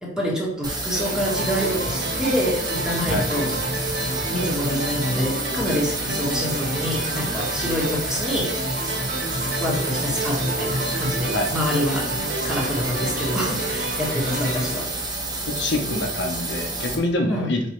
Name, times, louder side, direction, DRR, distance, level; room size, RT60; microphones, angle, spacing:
voice 1, 0.0-8.5 9.4-12.1 12.4-14.9 17.3-17.5, left 1 dB, 5° right, -3 dB, 1.7 m, -27 dB
sound 1, 0.6-17.0, right 2 dB, 25° right, 1.2 m, -30 dB
sound 2, 0.9-15.8, right 1 dB, 60° right, 2.1 m, -29 dB
voice 2, 15.5-17.6, left 2 dB, 70° left, 2 dB, 1.1 m, -25 dB
5.3 x 4.4 x 4.6 m, 0.71 s
head